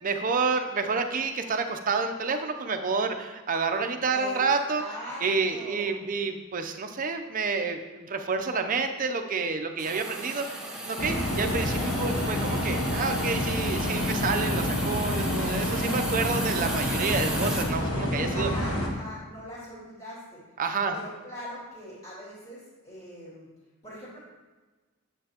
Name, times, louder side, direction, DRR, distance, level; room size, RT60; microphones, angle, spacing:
voice 1, 0.0-4.8 5.2-18.5 20.6-20.9, right 4 dB, 40° right, 6 dB, 0.6 m, -29 dB
voice 2, 4.0-4.4 4.7-6.0 18.3-20.4 20.9-23.5 23.8-24.2, equal, 30° left, -9 dB, 2.6 m, -41 dB
Hiss, 9.8-17.6, right 1 dB, 5° right, 0.9 m, -35 dB
sound 1, 11.0-18.9, left 1 dB, 85° left, 1.3 m, -28 dB
9.0 x 7.4 x 2.9 m, 1.3 s
head